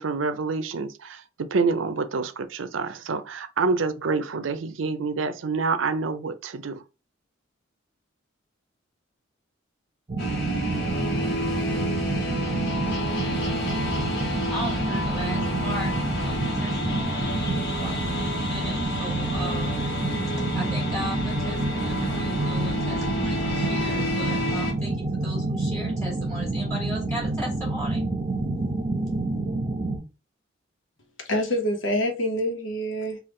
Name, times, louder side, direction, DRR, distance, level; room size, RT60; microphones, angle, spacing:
voice 1, 0.0-6.8, right 4 dB, 85° right, 0.5 m, -27 dB
sound 1, 10.1-30.0, right 2 dB, 30° right, 0.7 m, -28 dB
sound 2, 10.2-24.7, left 1 dB, 55° left, 1.3 m, -30 dB
voice 2, 14.5-17.4 17.8-18.0 18.5-19.9 20.3-28.0 28.8-28.9, equal, 15° left, 1.5 m, -37 dB
voice 3, 31.2-33.2, equal, 90° left, 1.1 m, -26 dB
3.5 x 2.4 x 3.7 m
head